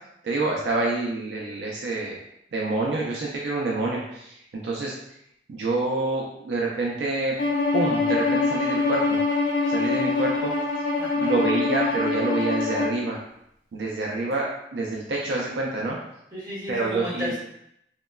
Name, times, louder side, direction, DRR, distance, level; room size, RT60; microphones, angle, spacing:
voice 1, 0.2-2.2 2.5-4.4 4.6-4.9 5.5-7.3 7.7-9.2 9.7-10.5 11.2-13.2 13.7-16.0 16.7-17.4, right 2 dB, 70° right, -2 dB, 0.4 m, -27 dB
Bowed string instrument, 7.4-13.0, left 3 dB, 70° left, 0.6 m, -24 dB
voice 2, 11.0-11.3 16.3-17.4, left 1 dB, 20° right, -10 dB, 1.1 m, -33 dB
3.0 x 2.2 x 2.2 m, 0.77 s
head